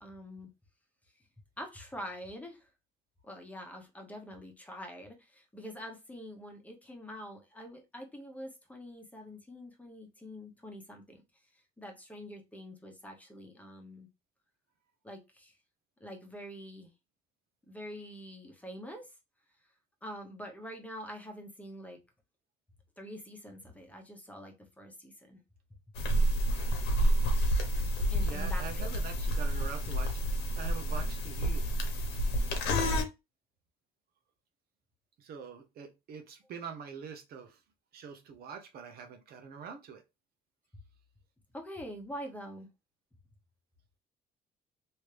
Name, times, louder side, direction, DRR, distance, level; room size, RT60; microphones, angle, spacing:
voice 1, 0.0-0.5 1.2-1.3 1.6-2.7 3.2-11.2 11.8-14.1 15.0-15.6 16.0-16.9 17.7-19.2 20.0-22.0 23.0-25.4 28.1-28.9 41.5-42.7, equal, 10° left, 1.0 m, -45 dB
sound 1, 26.0-33.0, equal, 90° left, 1.0 m, -29 dB
voice 2, 28.1-30.1 30.6-31.7 35.2-37.6 37.9-40.0, right 6 dB, 65° right, 0.8 m, -44 dB
3.2 x 2.7 x 3.3 m
cardioid pair, 110°, 17 cm